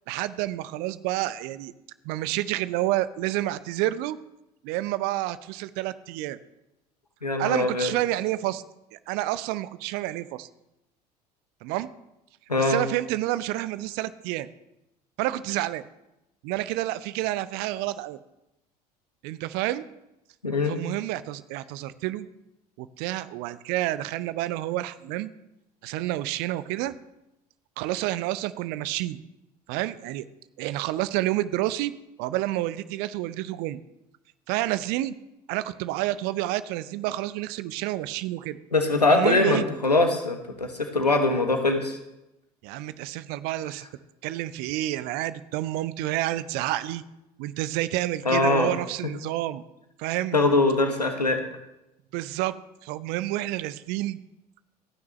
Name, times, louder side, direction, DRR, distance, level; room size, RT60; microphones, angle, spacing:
voice 1, 0.1-1.7 2.0-4.2 4.6-6.4 7.4-8.6 8.9-10.5 11.6-11.9 12.6-14.5 15.2-15.8 16.4-18.2 19.2-19.8 20.7-22.3 22.8-25.3 25.8-26.9 27.8-29.2 29.7-30.2 30.6-31.9 32.2-33.8 34.5-35.1 35.5-38.6 39.1-39.6 42.6-43.9 44.2-47.0 47.4-49.6 50.0-50.4 52.1-52.5 52.8-54.2, right 15 dB, 55° right, 16 dB, 0.7 m, -29 dB
voice 2, 7.2-7.9 12.5-12.8 20.4-20.8 38.7-42.0 48.2-48.7 50.3-51.4, left 2 dB, 85° left, 6 dB, 1.3 m, -22 dB
26.0 x 9.5 x 3.2 m, 0.91 s
figure-of-eight pair, 60°, 20 cm